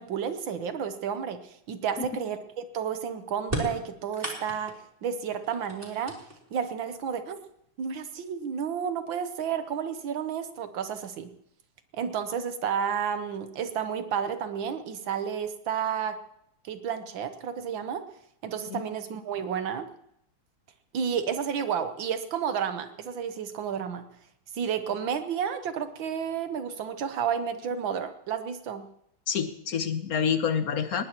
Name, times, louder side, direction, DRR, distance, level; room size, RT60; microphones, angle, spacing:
voice 1, 0.0-4.8 5.0-6.2 6.5-7.4 7.8-11.3 11.9-16.2 16.6-18.0 18.4-19.9 20.9-24.1 24.5-28.9, right 7 dB, 65° right, 9 dB, 1.6 m, -31 dB
sound 1, 3.4-4.9 5.4-6.6 7.6-7.7 8.7-8.8 9.3-9.8, right 1 dB, 25° right, 2.9 m, -35 dB
voice 2, 29.3-31.0, left 7 dB, 55° left, 9 dB, 1.2 m, -27 dB
19.5 x 19.0 x 3.0 m, 0.75 s
omnidirectional pair, 2.4 m